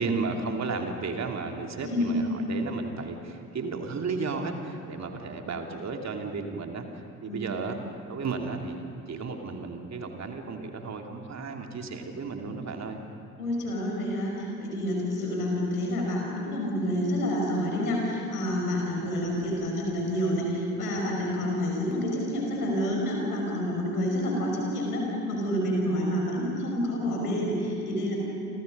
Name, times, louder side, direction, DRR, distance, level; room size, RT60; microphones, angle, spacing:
voice 1, 0.0-6.8 7.2-13.0, right 4 dB, 35° right, 3 dB, 2.8 m, -33 dB
voice 2, 1.8-2.2 7.3-7.5 13.4-28.2, equal, 80° left, -1 dB, 5.9 m, -28 dB
30.0 x 25.0 x 5.4 m, 2.6 s
figure-of-eight pair, 55°, 45 cm